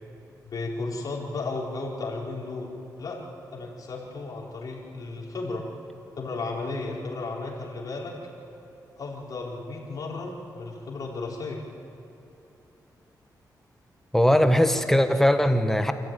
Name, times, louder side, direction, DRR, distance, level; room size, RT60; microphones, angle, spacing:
voice 1, 0.5-2.7 3.0-3.2 3.5-5.7 6.2-8.2 9.0-11.6, left 3 dB, 60° left, -3 dB, 4.7 m, -34 dB
voice 2, 14.1-15.9, equal, 5° left, 7 dB, 1.3 m, -20 dB
27.0 x 14.5 x 9.2 m, 2.9 s
cardioid pair, 95°, 7 cm